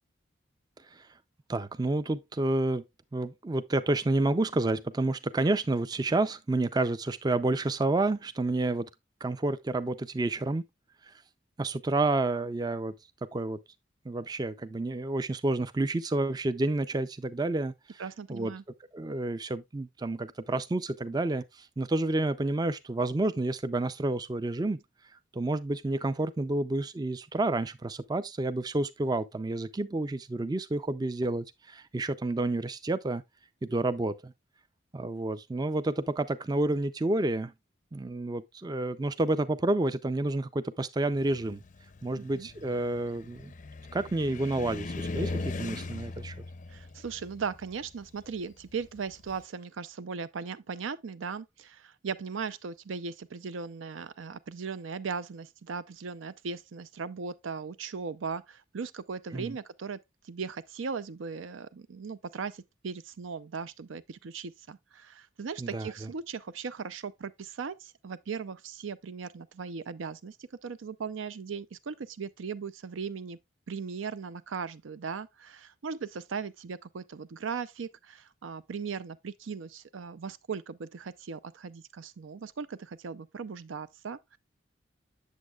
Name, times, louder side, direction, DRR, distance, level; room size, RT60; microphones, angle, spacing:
voice 1, 1.5-2.8 3.1-8.9 9.2-10.6 11.0-11.1 11.6-12.9 13.3-13.6 14.1-17.7 18.3-18.5 18.9-24.8 25.3-33.2 33.6-34.3 34.9-37.5 37.9-41.6 42.0-43.5 43.9-46.4 59.3-59.6 65.6-66.1, right 2 dB, 20° right, 0.3 m, -29 dB
voice 2, 18.0-18.6 42.2-42.5 46.7-60.0 60.2-73.4 73.7-84.4, right 5 dB, 85° right, 0.5 m, -38 dB
Car, 41.2-49.4, left 2 dB, 40° left, 0.5 m, -39 dB
8.2 x 7.3 x 2.3 m
head